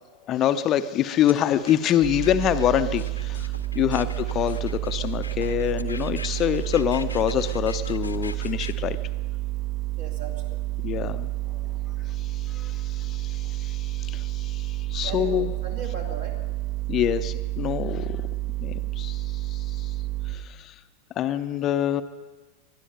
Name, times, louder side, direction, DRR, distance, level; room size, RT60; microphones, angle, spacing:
voice 1, 0.3-9.0 10.8-11.3 12.2-15.5 16.9-18.2 18.6-19.9 20.3-20.7 21.2-22.0, left 11 dB, 30° left, 11 dB, 0.6 m, -26 dB
sound 1, 1.3-8.7, left 3 dB, 80° left, 0.8 m, -42 dB
sound 2, 2.0-20.4, right 16 dB, 30° right, 3.0 m, -30 dB
voice 2, 3.7-4.1 10.0-10.6 13.0-13.1 15.0-16.4, right 5 dB, 60° right, 2 dB, 2.6 m, -38 dB
21.0 x 12.5 x 5.4 m, 1.3 s
figure-of-eight pair, 90°, 0 cm